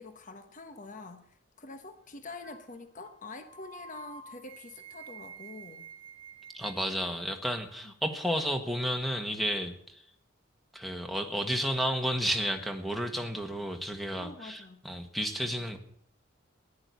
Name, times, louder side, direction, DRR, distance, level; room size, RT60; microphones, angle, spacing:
voice 1, 0.0-5.8 7.8-7.9 14.2-14.8, left 3 dB, 40° left, 8 dB, 1.1 m, -46 dB
sound 1, 2.4-2.7 3.0-3.2 3.5-6.9, right 5 dB, 70° right, 1.1 m, -48 dB
voice 2, 6.5-10.0 10.7-15.8, equal, ahead, 6 dB, 1.5 m, -32 dB
15.0 x 11.0 x 8.4 m, 0.69 s
head